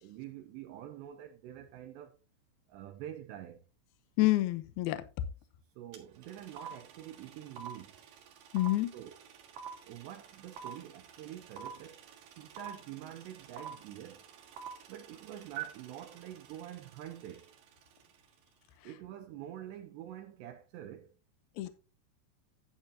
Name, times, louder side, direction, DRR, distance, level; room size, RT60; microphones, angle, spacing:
voice 1, 0.0-2.2 2.7-3.6 5.8-8.0 8.9-9.2 9.8-12.0 12.4-14.2 14.9-17.5 18.8-21.1, right 11 dB, 85° right, 2.6 m, -46 dB
voice 2, 4.2-5.0 8.5-8.9 21.6-21.7, left 17 dB, 90° left, 2.2 m, -28 dB
sound 1, 5.9-6.0 6.2-17.4, right 8 dB, 60° right, 2.6 m, -45 dB
11.5 x 9.0 x 2.8 m
omnidirectional pair, 5.6 m